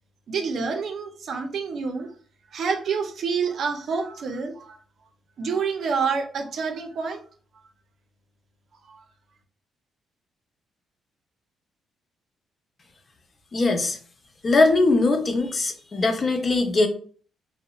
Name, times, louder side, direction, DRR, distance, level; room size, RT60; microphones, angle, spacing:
voice 1, 0.3-2.1 2.5-4.8 5.4-7.2 8.9-9.0, right 5 dB, 60° right, 5 dB, 0.4 m, -28 dB
voice 2, 13.5-14.0 14.4-16.9, left 3 dB, 35° left, 5 dB, 0.5 m, -21 dB
2.7 x 2.0 x 2.3 m, 0.43 s
cardioid pair, 90°, 0 cm